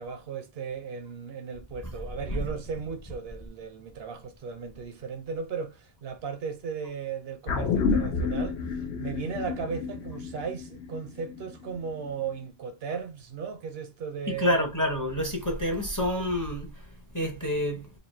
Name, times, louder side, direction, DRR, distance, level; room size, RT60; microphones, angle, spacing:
voice 1, 0.0-14.6, right 6 dB, 65° right, 0.8 m, -36 dB
sound 1, 7.5-12.1 12.4-12.5, left 5 dB, 75° left, 1.0 m, -30 dB
voice 2, 14.3-16.7 17.1-17.9, left 1 dB, 20° left, 0.7 m, -28 dB
3.1 x 2.6 x 4.1 m
omnidirectional pair, 1.1 m